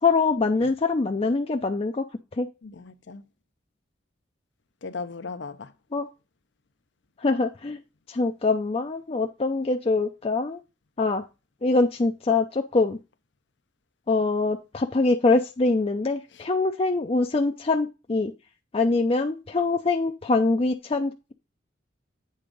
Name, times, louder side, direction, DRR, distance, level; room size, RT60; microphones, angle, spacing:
voice 1, 0.0-2.0 2.4-2.5 5.9-6.1 7.2-7.8 8.1-10.6 11.0-11.2 11.6-13.0 14.1-18.3 18.7-21.3, left 3 dB, 30° left, 0.5 m, -24 dB
voice 2, 2.6-3.2 4.8-5.7 16.3-16.4, left 4 dB, 75° left, 0.6 m, -37 dB
8.5 x 3.6 x 5.2 m
head